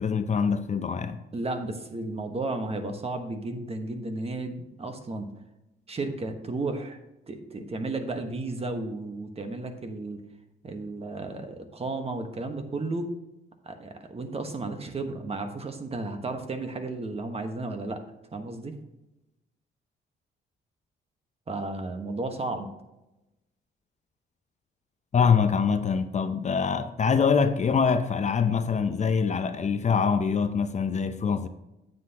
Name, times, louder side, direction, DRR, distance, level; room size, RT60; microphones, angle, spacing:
voice 1, 0.0-1.2 25.1-31.5, left 6 dB, 35° left, 0.6 m, -24 dB
voice 2, 1.3-5.3 5.9-7.0 7.3-10.2 10.6-13.1 13.6-18.0 18.3-18.8 21.5-22.7, right 2 dB, 30° right, 1.3 m, -33 dB
9.3 x 7.8 x 2.9 m
cardioid pair, 90°, 20 cm